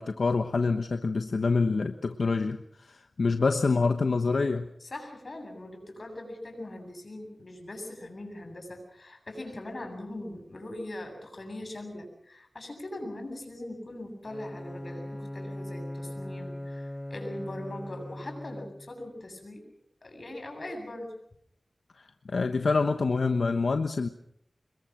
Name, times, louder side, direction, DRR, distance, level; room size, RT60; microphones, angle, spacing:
voice 1, 0.0-4.7 22.0-24.1, left 4 dB, 85° left, 7 dB, 1.1 m, -26 dB
voice 2, 4.8-19.7 20.0-21.1, left 1 dB, 55° left, 4 dB, 7.8 m, -41 dB
Bowed string instrument, 14.2-19.1, left 1 dB, 20° left, 1.1 m, -39 dB
27.0 x 21.5 x 6.2 m, 0.70 s
wide cardioid pair, 75°, 0 cm